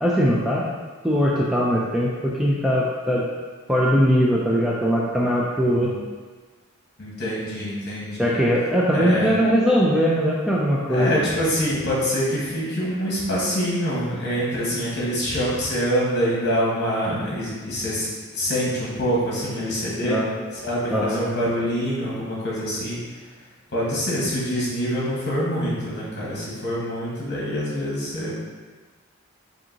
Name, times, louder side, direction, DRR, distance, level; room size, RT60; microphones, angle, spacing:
voice 1, 0.0-0.6 1.0-3.3 3.7-5.9 8.2-11.1 20.1-20.3 20.9-21.2, equal, ahead, -5 dB, 0.3 m, -20 dB
voice 2, 5.6-6.0 7.0-8.3 8.9-9.3 10.9-18.1 18.3-20.2 20.6-23.0 23.7-28.3, equal, 50° left, -6 dB, 1.4 m, -25 dB
5.0 x 2.7 x 2.8 m, 1.4 s
head